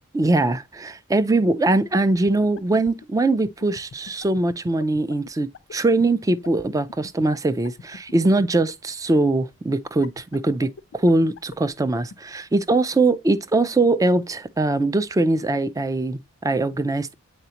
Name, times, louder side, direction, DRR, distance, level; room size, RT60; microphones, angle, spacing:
voice 1, 0.1-17.1, right 2 dB, 15° right, 0.4 m, -22 dB
sound 1, 1.7-8.7 10.0-12.1, left 5 dB, 60° left, 0.5 m, -40 dB
8.0 x 4.1 x 2.9 m
head